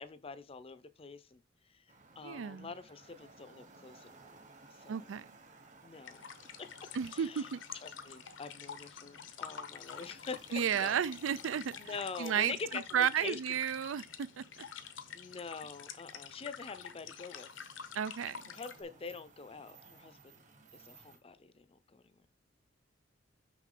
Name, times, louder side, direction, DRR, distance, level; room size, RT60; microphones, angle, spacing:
voice 1, 0.0-1.4 1.7-1.8 2.2-4.4 4.7-5.1 5.8-6.3 6.6-6.8 7.1-7.5 7.8-11.0 11.8-13.6 15.1-17.5 18.5-20.4 20.7-22.0, left 4 dB, 30° left, 0.5 m, -45 dB
sound 1, 1.9-21.2, right 3 dB, 40° right, 1.3 m, -60 dB
voice 2, 2.2-2.7 4.9-5.3 6.9-7.6 10.5-14.6 17.9-18.4, right 8 dB, 90° right, 0.4 m, -33 dB
sound 2, 6.0-18.8, left 7 dB, 75° left, 0.8 m, -48 dB
6.3 x 5.6 x 3.8 m
head